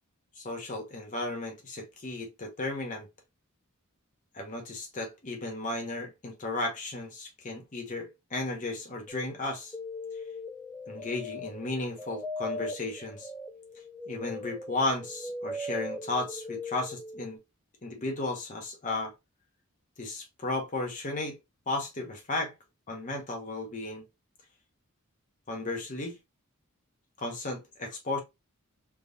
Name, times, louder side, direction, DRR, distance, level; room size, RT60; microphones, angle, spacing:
voice 1, 0.4-3.1 4.3-9.7 10.9-13.3 14.1-17.4 17.8-19.1 20.0-21.4 21.7-22.5 22.9-24.0 25.5-26.2 27.2-28.2, left 2 dB, 40° left, 1.0 m, -34 dB
sound 1, 9.1-17.3, left 2 dB, 5° left, 0.4 m, -39 dB
3.5 x 3.0 x 2.6 m
head